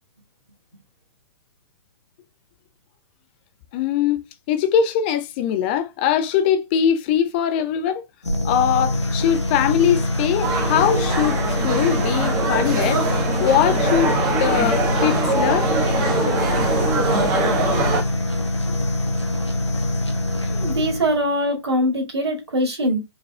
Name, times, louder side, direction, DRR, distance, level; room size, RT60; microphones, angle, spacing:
voice 1, 3.7-4.2 4.5-8.0 8.4-13.0 13.4-14.1 14.4-15.7, left 9 dB, 25° left, 0.4 m, -21 dB
sound 1, 8.2-21.2, left 1 dB, 85° left, 1.3 m, -24 dB
sound 2, 10.4-18.0, right 2 dB, 25° right, 1.1 m, -23 dB
voice 2, 20.5-23.0, equal, 65° right, 2.2 m, -22 dB
4.9 x 4.0 x 2.3 m
figure-of-eight pair, 120°, 14 cm